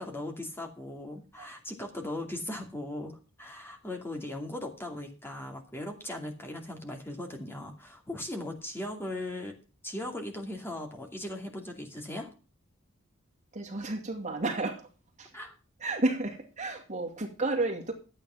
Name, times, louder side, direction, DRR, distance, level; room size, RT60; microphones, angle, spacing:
voice 1, 0.0-9.6 9.8-12.3 15.3-15.5, left 1 dB, 10° left, 2.5 m, -38 dB
voice 2, 13.5-14.9 15.2-15.3 15.8-17.9, right 2 dB, 35° right, 2.4 m, -31 dB
13.0 x 8.9 x 5.7 m
head